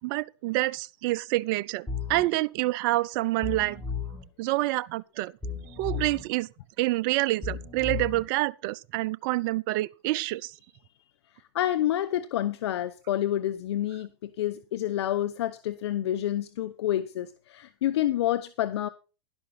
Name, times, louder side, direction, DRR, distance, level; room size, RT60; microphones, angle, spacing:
voice 1, 0.0-3.8 4.4-5.3 5.8-6.5 6.8-10.5, right 19 dB, 45° right, 0.6 m, -27 dB
sound 1, 1.9-2.2 3.4-4.2 5.4-6.2 7.4-8.2, left 5 dB, 5° left, 4.4 m, -34 dB
voice 2, 11.5-18.9, left 12 dB, 65° left, 0.8 m, -28 dB
11.5 x 11.5 x 4.1 m
hypercardioid pair, 110°, 15 cm